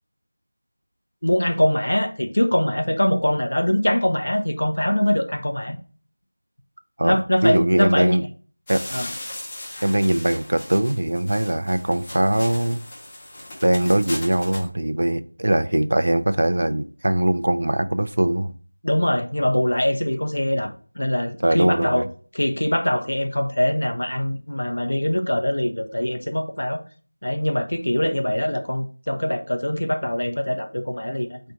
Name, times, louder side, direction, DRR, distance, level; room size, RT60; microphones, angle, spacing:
voice 1, 1.2-5.8 7.0-8.2 8.9-9.1 18.8-22.0 22.3-26.8 27.2-31.4, left 1 dB, 65° left, 0.7 m, -23 dB
voice 2, 7.0-8.2 8.7-8.8 9.8-12.8 13.6-18.5 21.4-22.1, right 1 dB, 50° right, 0.3 m, -21 dB
sound 1, 8.7-14.7, left 1 dB, 15° left, 0.8 m, -37 dB
4.3 x 2.5 x 4.3 m
figure-of-eight pair, 170°, 0 cm